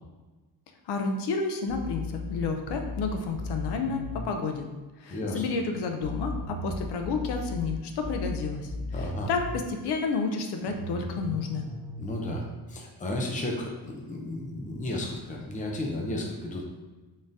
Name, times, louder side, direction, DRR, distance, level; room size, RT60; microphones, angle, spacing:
voice 1, 0.9-4.7 5.0-11.7, left 4 dB, 75° left, 4 dB, 0.6 m, -31 dB
sound 1, 1.7-4.3 6.0-9.6 10.7-12.3, left 2 dB, 65° right, 0.8 m, -36 dB
voice 2, 5.1-5.4 8.9-9.3 12.0-16.6, left 1 dB, 20° left, -1 dB, 0.6 m, -33 dB
3.7 x 3.5 x 2.6 m, 1.2 s
cardioid pair, 135°, 40 cm